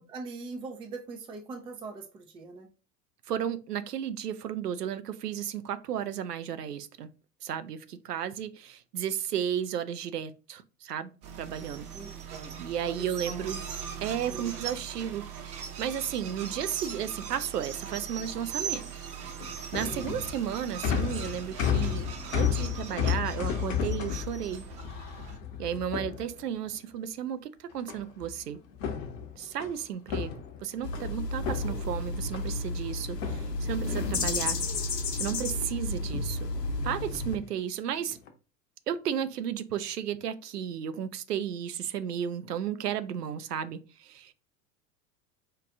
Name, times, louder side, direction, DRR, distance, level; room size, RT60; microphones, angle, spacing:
voice 1, 0.0-2.7 11.9-13.6 14.3-14.6 19.8-20.2, right 3 dB, 10° right, 0.4 m, -42 dB
voice 2, 3.3-7.1 7.4-11.1 11.4-11.9 12.6-13.6 14.0-18.9 19.7-22.1 22.3-24.6 25.6-28.6 29.4-30.3 30.6-34.6 35.1-36.5 36.8-38.2 38.9-44.3, right 9 dB, 75° right, 0.6 m, -33 dB
sound 1, 11.2-25.4, right 7 dB, 30° right, 0.8 m, -40 dB
sound 2, 19.2-26.8 27.9-28.4 28.7-31.1 31.4-32.7 33.2-34.8 35.2-35.7 36.0-36.4 37.1-37.5 38.0-38.3, left 8 dB, 55° left, 0.9 m, -33 dB
sound 3, 30.8-37.4, left 2 dB, 85° left, 0.7 m, -32 dB
4.6 x 2.4 x 3.6 m
figure-of-eight pair, 80°, 48 cm